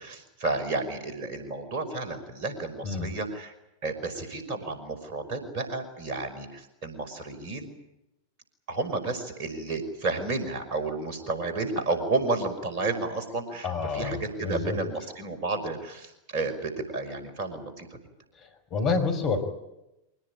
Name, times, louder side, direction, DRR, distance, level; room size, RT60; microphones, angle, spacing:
voice 1, 0.0-3.5 3.8-7.7 8.7-17.9, right 3 dB, 45° right, 8 dB, 5.5 m, -31 dB
voice 2, 13.6-14.8 18.3-19.4, left 4 dB, 35° left, 5 dB, 5.3 m, -29 dB
25.0 x 18.5 x 9.9 m, 0.91 s
figure-of-eight pair, 90°, 0 cm